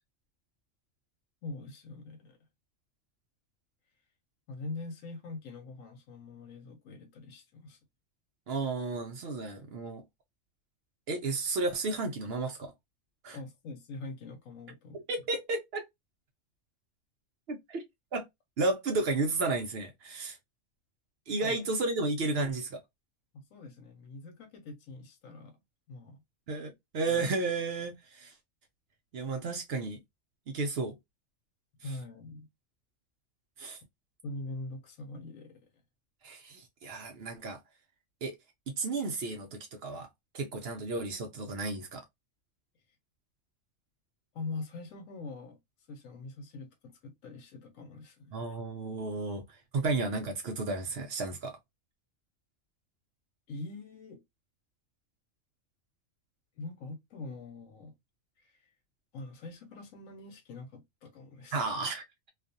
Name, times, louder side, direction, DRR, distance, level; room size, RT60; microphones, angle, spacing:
voice 1, 1.4-2.4 4.5-7.8 13.3-15.0 21.4-21.6 23.3-25.6 25.9-26.2 27.0-27.2 31.8-32.5 34.2-35.7 44.3-45.6 45.9-48.4 53.5-54.2 56.6-57.9 58.4-58.7 59.1-61.6, left 3 dB, 85° left, 1.1 m, -43 dB
voice 2, 8.5-10.0 11.1-12.7 13.2-13.4 15.1-15.9 17.5-17.8 18.1-18.2 18.6-20.4 21.3-22.8 26.5-28.3 29.1-30.0 30.5-31.0 33.6-33.8 36.2-37.6 38.2-38.4 38.7-40.1 40.3-42.0 48.3-49.4 49.7-51.6 61.5-62.3, right 3 dB, 60° right, 0.7 m, -33 dB
2.4 x 2.3 x 2.6 m
omnidirectional pair, 1.3 m